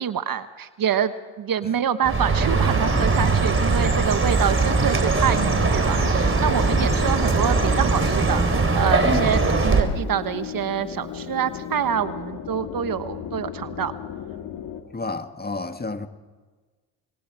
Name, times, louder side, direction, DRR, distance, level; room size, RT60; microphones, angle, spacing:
voice 1, 0.0-13.9, right 8 dB, 50° right, 1.2 m, -26 dB
Chirp tweet, 2.0-9.8, right 3 dB, 30° right, 3.8 m, -20 dB
sound 1, 5.2-14.8, left 9 dB, 80° left, 2.3 m, -36 dB
voice 2, 9.0-9.4 14.9-16.1, left 3 dB, 20° left, 1.9 m, -29 dB
27.5 x 22.0 x 4.8 m
supercardioid pair, 60°, 43 cm